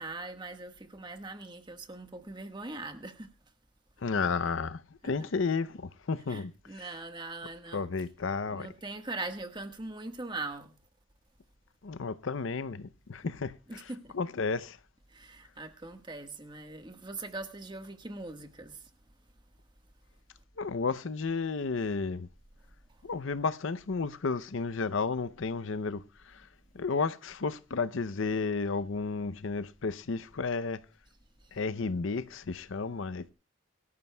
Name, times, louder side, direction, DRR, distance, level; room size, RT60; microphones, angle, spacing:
voice 1, 0.0-3.3 5.0-5.1 6.3-7.8 8.5-10.8 13.7-14.1 15.1-18.9, right 2 dB, 20° right, 1.4 m, -41 dB
voice 2, 4.0-6.9 7.7-8.7 11.8-14.8 20.6-22.3 23.0-26.5 26.7-30.8 31.5-33.3, left 4 dB, 65° left, 0.6 m, -32 dB
22.5 x 13.5 x 2.2 m
head